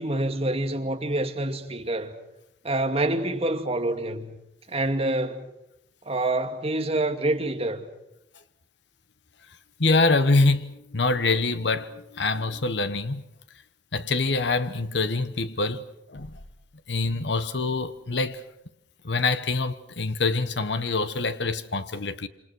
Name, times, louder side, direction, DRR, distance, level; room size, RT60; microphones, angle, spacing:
voice 1, 0.0-2.1 2.6-4.3 4.7-5.4 6.1-7.9, right 2 dB, 35° right, 2.5 m, -26 dB
voice 2, 9.8-13.2 13.9-16.4 16.9-18.4 19.0-22.3, left 3 dB, 75° left, 1.2 m, -25 dB
28.0 x 26.5 x 6.3 m
head